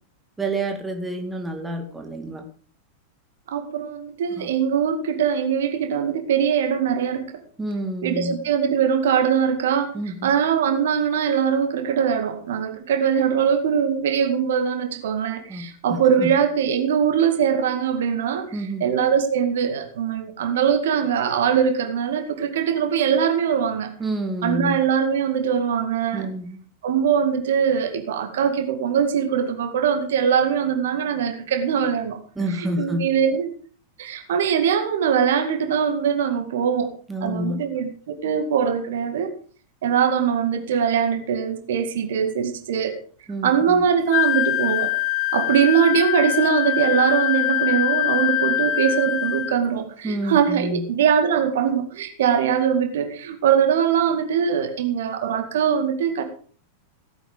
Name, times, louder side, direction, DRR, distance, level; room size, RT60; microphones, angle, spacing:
voice 1, 0.4-2.5 4.4-4.5 7.6-8.4 9.9-10.3 15.5-16.3 18.5-18.9 24.0-24.8 26.1-26.6 32.4-33.0 37.1-37.6 43.3-43.8 50.0-50.8, right 1 dB, 10° right, 4 dB, 2.5 m, -28 dB
voice 2, 3.5-7.4 8.0-10.0 10.2-18.5 18.8-23.9 24.4-26.3 26.8-32.2 32.6-33.5 34.0-36.9 37.2-39.3 39.8-43.0 43.4-44.9 45.3-56.2, right 7 dB, 60° right, 7 dB, 2.0 m, -22 dB
Wind instrument woodwind instrument, 44.1-49.6, left 14 dB, 35° left, 0.5 m, -23 dB
16.5 x 10.0 x 5.2 m, 0.43 s
figure-of-eight pair, 90°, 0 cm